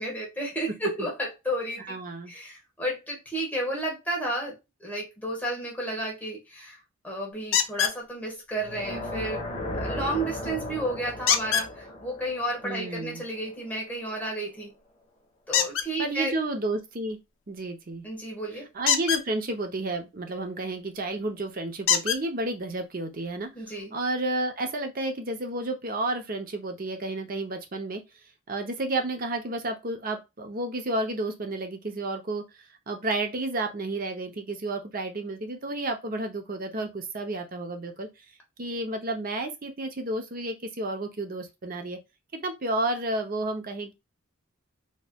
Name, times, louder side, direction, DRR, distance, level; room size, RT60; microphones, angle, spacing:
voice 1, 0.0-2.0 2.3-6.8 7.0-9.4 9.8-14.7 15.5-16.3 18.0-18.7 23.5-23.9, right 1 dB, 10° left, 1.3 m, -32 dB
voice 2, 1.8-2.3 12.6-13.2 16.0-17.2 17.5-18.0 18.7-23.5 23.9-28.0 28.5-32.4 32.9-38.1 38.6-42.0 42.3-43.9, right 2 dB, 40° right, 0.7 m, -31 dB
sound 1, 7.5-8.0 11.3-11.7 15.5-15.9 18.8-19.2 20.9-21.0 21.9-22.2 23.2-23.3 23.8-23.9, left 8 dB, 60° left, 0.5 m, -24 dB
sound 2, 8.5-13.7, left 1 dB, 30° left, 1.1 m, -36 dB
4.3 x 3.1 x 2.2 m
head